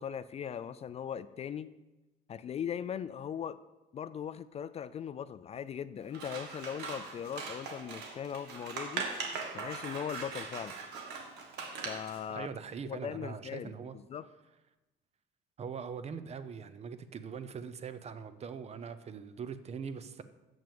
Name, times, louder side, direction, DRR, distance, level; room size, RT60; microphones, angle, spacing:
voice 1, 0.0-1.7 2.3-3.6 3.9-9.1 9.5-10.7 11.8-12.5 12.8-14.3, left 8 dB, 40° left, 0.4 m, -39 dB
Scissors, 6.1-12.2, right 4 dB, 75° right, 1.7 m, -40 dB
voice 2, 12.3-14.0 15.6-20.2, right 6 dB, 40° right, 0.7 m, -42 dB
7.2 x 6.1 x 6.9 m
cardioid pair, 110°, 17 cm